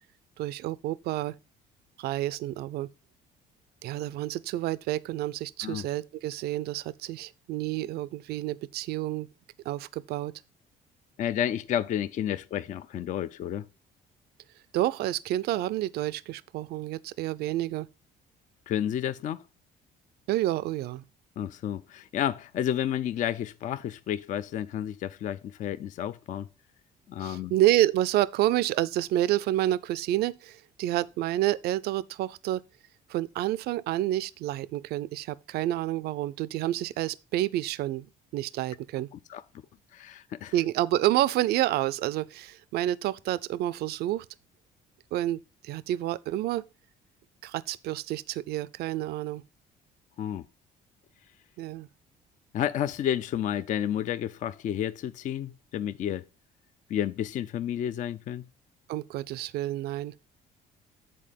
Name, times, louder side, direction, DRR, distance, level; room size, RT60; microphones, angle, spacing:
voice 1, 0.4-1.3 2.0-2.9 3.8-9.3 9.7-10.3 14.7-17.9 20.3-21.0 27.2-32.6 33.1-38.1 38.3-39.1 40.5-44.3 45.1-46.6 47.4-49.4 51.6-51.9 58.9-60.1, right 14 dB, 70° right, 0.4 m, -29 dB
voice 2, 11.2-13.7 18.7-19.4 21.4-26.5 27.1-27.5 39.3-39.4 39.9-40.5 50.2-50.4 52.5-56.2 56.9-58.4, left 10 dB, 50° left, 0.4 m, -31 dB
7.6 x 4.2 x 5.0 m
cardioid pair, 110°, 17 cm